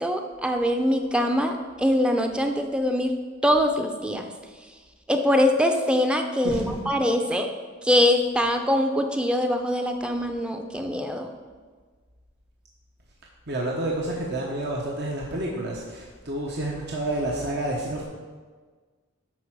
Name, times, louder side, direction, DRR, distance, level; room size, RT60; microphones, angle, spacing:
voice 1, 0.0-3.2 3.4-4.3 5.1-7.5 7.8-11.3, left 1 dB, 5° right, 4 dB, 0.6 m, -23 dB
voice 2, 6.4-6.8 13.5-18.0, right 1 dB, 60° right, -2 dB, 1.1 m, -29 dB
10.5 x 4.4 x 6.2 m, 1.5 s
head